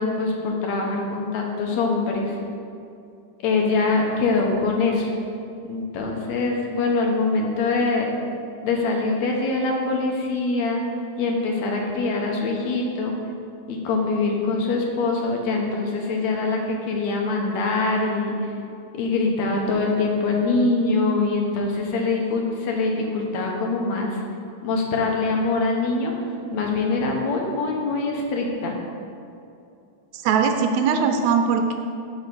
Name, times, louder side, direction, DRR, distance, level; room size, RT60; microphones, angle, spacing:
voice 1, 0.0-2.3 3.4-5.1 5.7-8.1 8.6-10.8 11.2-13.1 13.7-18.5 18.9-24.2 24.6-26.1 26.5-28.7, left 3 dB, 75° left, 0 dB, 2.1 m, -23 dB
voice 2, 30.1-31.8, right 6 dB, 80° right, 5 dB, 1.8 m, -20 dB
5.9 x 5.1 x 6.5 m, 2.6 s
omnidirectional pair, 3.3 m